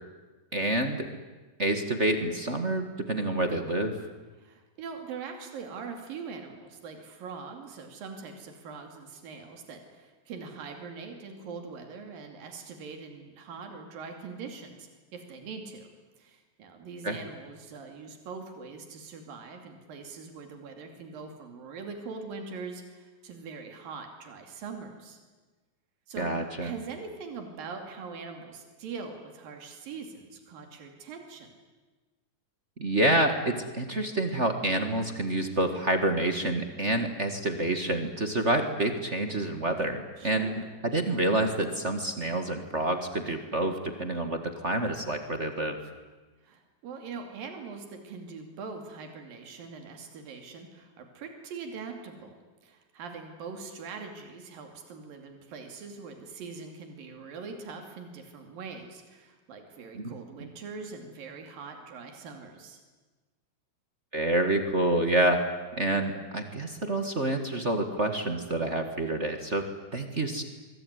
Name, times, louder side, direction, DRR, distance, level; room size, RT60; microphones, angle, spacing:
voice 1, 0.5-1.1 1.6-3.9 17.0-17.2 26.2-26.7 32.8-45.8 60.0-60.1 60.4-60.5 64.1-65.4 65.8-70.4, right 1 dB, 30° right, 6 dB, 1.3 m, -28 dB
voice 2, 4.4-15.9 16.2-25.2 26.1-31.5 40.2-40.7 46.4-62.8, right 5 dB, 90° right, 4 dB, 4.3 m, -42 dB
24.0 x 24.0 x 9.7 m, 1.3 s
omnidirectional pair, 3.9 m